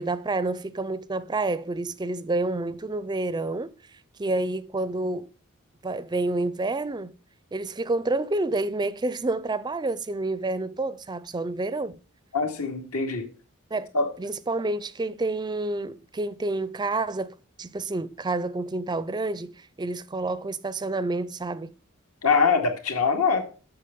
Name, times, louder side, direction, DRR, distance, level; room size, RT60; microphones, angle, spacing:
voice 1, 0.0-3.7 4.2-5.3 5.8-7.1 7.5-12.0 13.7-13.9 14.2-21.7, right 2 dB, 20° right, 0.4 m, -29 dB
voice 2, 12.3-13.3 13.9-14.1 22.2-23.5, left 5 dB, 80° left, 2.3 m, -23 dB
8.5 x 7.0 x 6.9 m
head